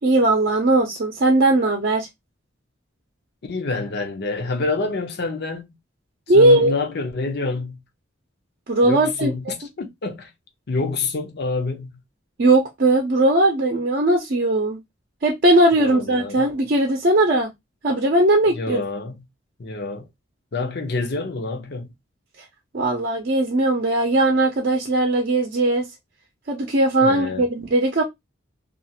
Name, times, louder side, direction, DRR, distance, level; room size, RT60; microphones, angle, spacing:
voice 1, 0.0-2.1 6.3-6.7 8.7-9.3 12.4-14.8 15.2-17.5 17.8-18.8 22.7-25.8 26.5-28.0, right 2 dB, 50° right, 0.6 m, -18 dB
voice 2, 3.5-5.7 6.3-7.8 8.8-10.3 10.7-11.9 15.7-16.5 18.5-19.2 19.6-20.1 20.5-21.9 27.0-27.5, left 3 dB, 55° left, 0.6 m, -27 dB
2.4 x 2.4 x 2.7 m
head